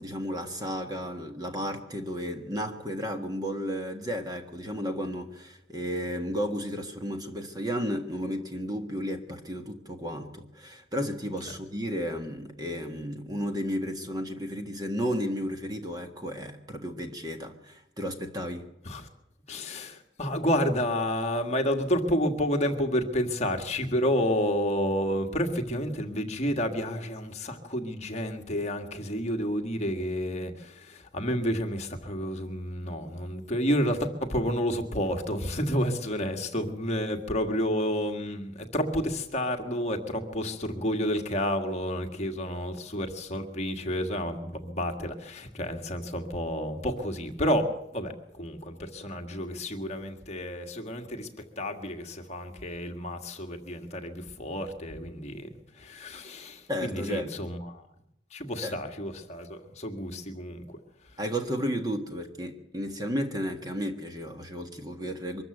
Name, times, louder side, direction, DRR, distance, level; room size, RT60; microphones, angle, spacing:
voice 1, 0.0-18.7 56.7-57.3 58.6-58.7 61.2-65.4, equal, 20° right, 5 dB, 1.6 m, -33 dB
voice 2, 19.5-55.5 55.8-57.8 58.3-60.8, equal, 35° left, 4 dB, 1.8 m, -30 dB
23.5 x 14.0 x 7.9 m, 0.81 s
head